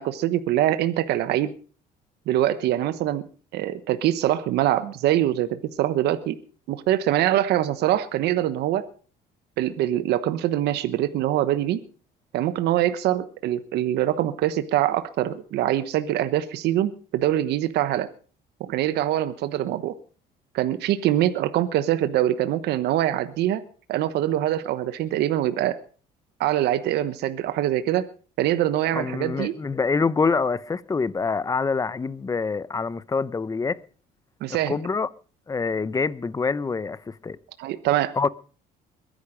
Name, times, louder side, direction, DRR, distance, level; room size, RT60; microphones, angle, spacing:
voice 1, 0.0-1.5 2.3-3.2 3.5-6.4 6.7-8.9 9.6-11.8 12.3-18.1 18.6-19.9 20.5-23.6 23.9-25.8 26.4-28.1 28.4-29.5 34.4-34.8 37.6-38.1, right 12 dB, 80° right, 1.1 m, -24 dB
voice 2, 28.9-33.8 34.7-35.1 35.5-37.4 38.2-38.3, left 4 dB, 20° left, 0.8 m, -25 dB
22.0 x 10.5 x 5.1 m
cardioid pair, 110°, 17 cm